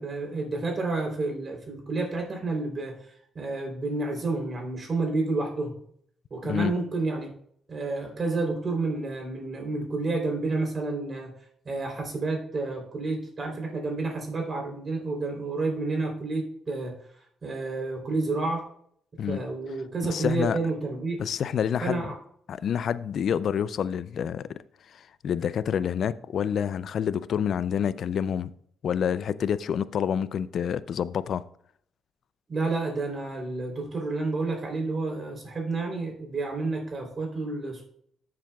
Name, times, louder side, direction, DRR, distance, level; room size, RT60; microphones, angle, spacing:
voice 1, 0.0-5.7 6.3-7.3 7.7-11.3 11.6-16.9 17.4-18.6 19.3-21.2 21.8-22.1 32.5-37.8, right 3 dB, 40° right, 3.3 m, -30 dB
voice 2, 20.0-20.6 21.2-22.1 22.5-24.6 24.9-28.5 28.8-31.4, left 8 dB, 60° left, 0.4 m, -28 dB
13.0 x 7.5 x 2.3 m
cardioid pair, 90°, 0 cm